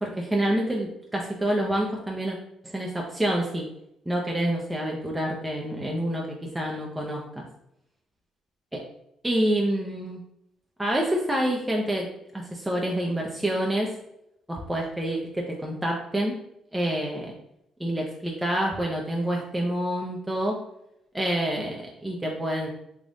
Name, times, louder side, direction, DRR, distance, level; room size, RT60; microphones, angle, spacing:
voice 1, 0.0-2.4 2.6-3.6 4.1-7.4 8.7-8.8 9.2-10.2 10.8-12.1 12.3-13.9 14.5-16.3 16.7-17.3 17.8-20.6 21.1-22.7, right 1 dB, 15° right, -1 dB, 0.7 m, -27 dB
3.5 x 2.5 x 3.8 m, 0.81 s
supercardioid pair, 60°, 0 cm